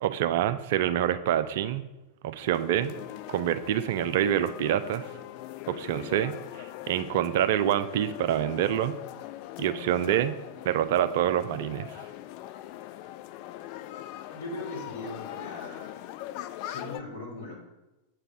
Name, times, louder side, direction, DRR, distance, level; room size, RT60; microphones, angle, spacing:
voice 1, 0.0-1.9 2.2-2.9 3.3-5.1 5.7-6.3 6.6-9.0 9.6-10.3 10.6-11.9, right 11 dB, 50° right, 12 dB, 0.4 m, -26 dB
sound 1, 2.4-17.0, left 14 dB, 45° left, 0.3 m, -41 dB
voice 2, 14.3-15.9 16.7-17.6, left 2 dB, 65° left, -2 dB, 2.4 m, -39 dB
7.8 x 3.3 x 6.0 m, 1.0 s
figure-of-eight pair, 90°, 0 cm